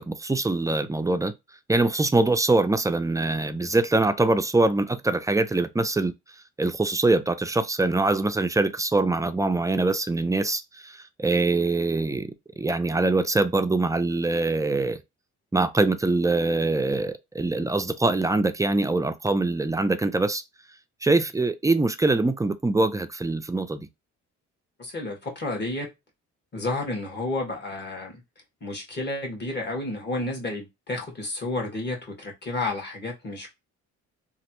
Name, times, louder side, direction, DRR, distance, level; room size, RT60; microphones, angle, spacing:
voice 1, 0.0-1.3 1.7-6.1 6.6-15.0 15.5-20.4 21.0-23.9, right 2 dB, 10° right, 0.3 m, -23 dB
voice 2, 24.8-25.9 26.5-28.1 28.6-33.5, left 2 dB, 35° left, 1.5 m, -31 dB
3.1 x 2.4 x 2.9 m
cardioid pair, 90°, 30 cm